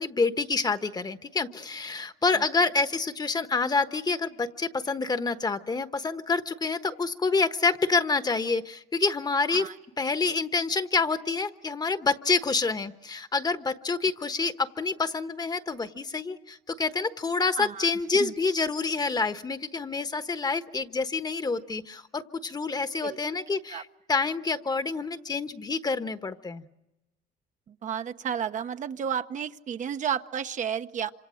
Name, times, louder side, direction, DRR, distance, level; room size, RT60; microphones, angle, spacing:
voice 1, 0.0-9.7 10.0-26.6, left 4 dB, 25° left, 10 dB, 1.2 m, -27 dB
voice 2, 17.5-17.9 18.2-18.3 23.0-23.2 23.7-23.8 27.8-31.1, right 8 dB, 45° right, 9 dB, 1.0 m, -32 dB
26.5 x 26.5 x 6.4 m, 0.95 s
cardioid pair, 110°, 17 cm